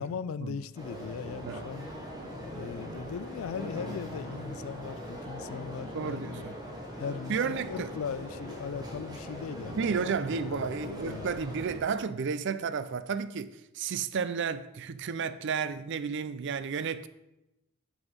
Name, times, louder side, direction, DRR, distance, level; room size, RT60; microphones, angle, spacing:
voice 1, 0.0-1.9 2.5-6.5 7.0-11.3, left 6 dB, 65° left, 0.3 m, -39 dB
sound 1, 0.8-11.8, equal, 20° right, 1.5 m, -41 dB
voice 2, 5.9-6.6 7.3-7.9 9.7-17.1, right 6 dB, 55° right, 0.4 m, -32 dB
7.2 x 6.2 x 5.1 m
head